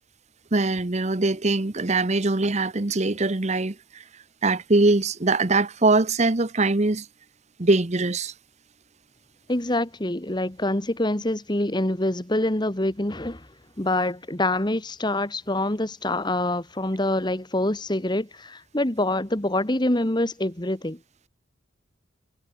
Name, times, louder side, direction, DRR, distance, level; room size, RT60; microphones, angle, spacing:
voice 1, 0.5-4.0 4.4-7.1 7.6-8.3, right 2 dB, 35° right, 0.9 m, -22 dB
voice 2, 9.5-13.5 13.8-21.0, left 1 dB, 20° left, 1.6 m, -25 dB
head